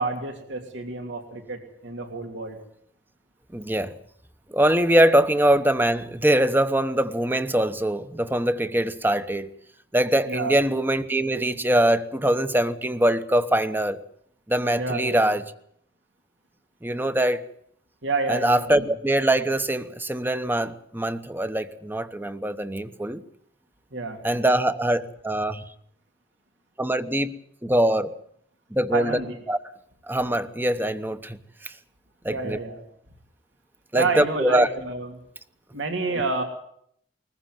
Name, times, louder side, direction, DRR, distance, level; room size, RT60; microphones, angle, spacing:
voice 1, 0.0-2.6 10.3-10.6 14.7-15.3 18.0-18.9 23.9-24.2 28.9-29.4 32.3-32.8 33.9-35.1 35.7-36.4, right 3 dB, 80° right, 4 dB, 3.1 m, -29 dB
voice 2, 3.5-3.9 4.5-9.5 9.9-14.0 14.5-15.4 16.8-17.4 18.3-23.2 24.2-25.6 26.8-27.3 27.6-28.1 28.7-29.2 29.5-29.6 30.1-31.7 32.2-32.6 33.9-34.7, right 1 dB, 10° right, 11 dB, 0.9 m, -23 dB
21.0 x 15.0 x 9.2 m, 0.69 s
head